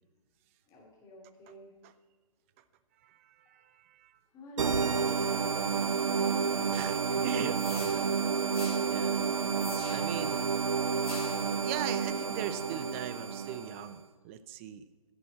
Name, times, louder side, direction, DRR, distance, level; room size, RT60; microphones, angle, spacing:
voice 1, 0.7-1.7 4.3-6.3, left 1 dB, 20° left, -2 dB, 2.9 m, -50 dB
voice 2, 3.0-4.2 6.7-8.2 8.9-9.2 9.9-10.5 11.6-14.8, right 9 dB, 20° right, 14 dB, 0.4 m, -40 dB
sound 1, 4.6-13.9, right 6 dB, 60° right, 0.8 m, -30 dB
sound 2, 7.5-8.0 8.5-8.8 9.6-10.2 11.0-11.4, left 2 dB, 75° left, 3.7 m, -43 dB
10.5 x 6.7 x 7.6 m, 1.2 s
figure-of-eight pair, 125°, 19 cm